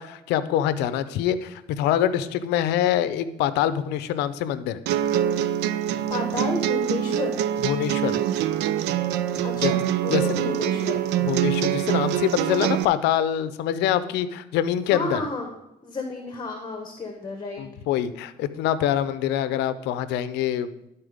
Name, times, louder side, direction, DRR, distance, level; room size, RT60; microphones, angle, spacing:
voice 1, 0.0-4.8 7.6-8.2 9.6-9.7 10.1-10.4 11.2-15.2 17.6-20.9, left 10 dB, 85° left, 13 dB, 0.6 m, -25 dB
sound 1, 4.9-12.8, right 11 dB, 90° right, 0.4 m, -24 dB
voice 2, 6.1-7.3 9.4-11.0 14.9-15.5 15.8-17.6, left 3 dB, 25° left, 3 dB, 1.2 m, -31 dB
11.5 x 4.3 x 5.0 m, 0.87 s
cardioid pair, 110°, 17 cm